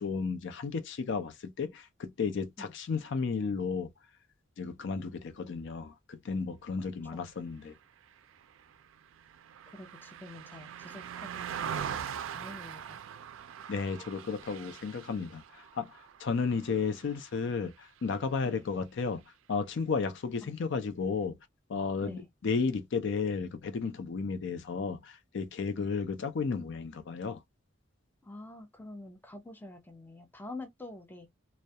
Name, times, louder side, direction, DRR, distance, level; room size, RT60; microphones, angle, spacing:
voice 1, 0.0-3.9 4.6-7.8 13.7-19.2 19.5-21.4 21.7-27.4, left 5 dB, 65° left, 0.4 m, -33 dB
Car passing by, 8.1-17.6 18.0-18.2, right 8 dB, 75° right, 0.3 m, -42 dB
voice 2, 9.7-13.0 18.4-18.6 20.4-20.5 22.0-22.3 25.7-25.9 28.2-31.3, left 2 dB, 10° left, 0.5 m, -47 dB
2.2 x 2.1 x 2.7 m
head